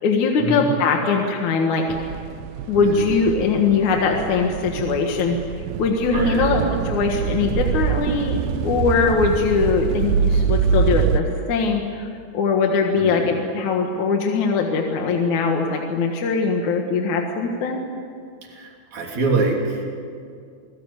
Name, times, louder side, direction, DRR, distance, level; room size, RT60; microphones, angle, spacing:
voice 1, 0.0-1.9 2.7-5.4 5.8-17.8, left 4 dB, 70° left, 2 dB, 2.9 m, -21 dB
sound 1, 1.9-11.2, right 7 dB, 80° right, 2.4 m, -24 dB
voice 2, 2.8-3.2 6.1-6.6 13.0-13.3 18.4-19.8, right 3 dB, 60° right, 0 dB, 4.4 m, -25 dB
28.0 x 20.0 x 8.2 m, 2.2 s
omnidirectional pair, 3.7 m